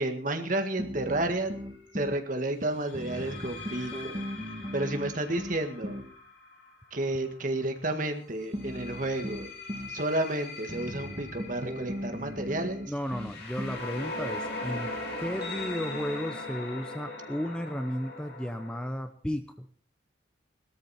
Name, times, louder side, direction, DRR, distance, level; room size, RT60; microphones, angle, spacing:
voice 1, 0.0-1.5 1.9-4.2 4.7-5.9 6.9-9.5 9.9-12.8, right 1 dB, 45° right, 6 dB, 1.8 m, -31 dB
sound 1, 0.8-2.2 2.9-6.1 8.5-10.0 10.7-13.9, equal, 25° right, 2.3 m, -38 dB
sound 2, 1.1-1.3 2.8-7.6 8.4-18.9, left 2 dB, 55° left, 4.1 m, -40 dB
voice 2, 12.9-19.7, equal, 5° left, 8 dB, 0.8 m, -34 dB
18.5 x 13.5 x 4.4 m, 0.42 s
head